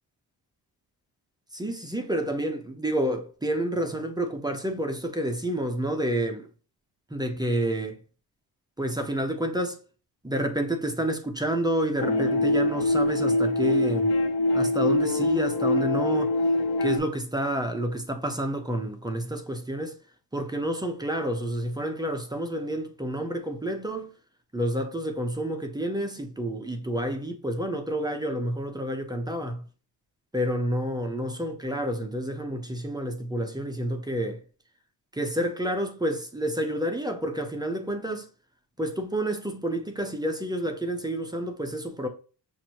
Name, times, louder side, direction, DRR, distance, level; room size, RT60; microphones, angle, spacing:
voice 1, 1.5-6.5 7.1-8.0 8.8-9.8 10.2-14.1 14.5-16.3 16.8-20.0 20.3-24.1 24.5-29.6 30.3-34.4 35.1-38.3 38.8-42.1, right 1 dB, 10° right, 0.6 m, -29 dB
sound 1, 12.0-17.0, left 2 dB, 75° left, 0.9 m, -24 dB
5.9 x 2.6 x 2.8 m
cardioid pair, 125°, 40 cm